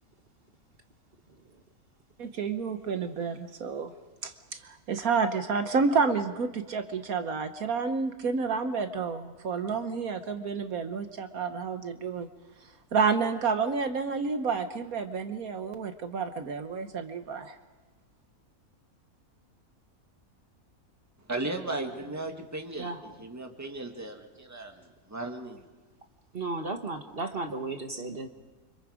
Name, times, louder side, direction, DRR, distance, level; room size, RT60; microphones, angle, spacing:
voice 1, 2.2-3.9 4.2-4.3 4.9-12.3 12.9-17.5, right 5 dB, 70° right, 8 dB, 1.5 m, -29 dB
voice 2, 21.3-22.9 23.2-25.6, right 2 dB, 10° right, 3 dB, 1.8 m, -36 dB
voice 3, 26.3-28.3, right 3 dB, 40° right, 5 dB, 1.5 m, -34 dB
29.5 x 26.0 x 5.0 m, 1.2 s
omnidirectional pair, 1.6 m